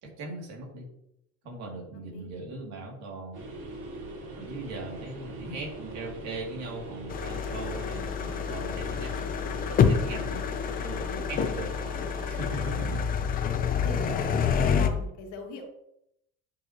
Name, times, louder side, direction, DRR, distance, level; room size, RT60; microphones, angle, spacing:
voice 1, 0.0-0.9 1.4-3.4 4.3-10.4 10.8-11.7 12.2-13.0, right 2 dB, 65° right, 0 dB, 2.6 m, -39 dB
sound 1, 3.3-12.7, right 1 dB, 85° right, 3.2 m, -41 dB
sound 2, 7.1-14.9, left 7 dB, 30° left, 0.6 m, -28 dB
voice 2, 10.3-11.0 12.5-13.6 13.8-15.7, left 2 dB, 75° left, 3 dB, 1.8 m, -42 dB
9.0 x 6.3 x 2.9 m, 0.77 s
cardioid pair, 175°, 30 cm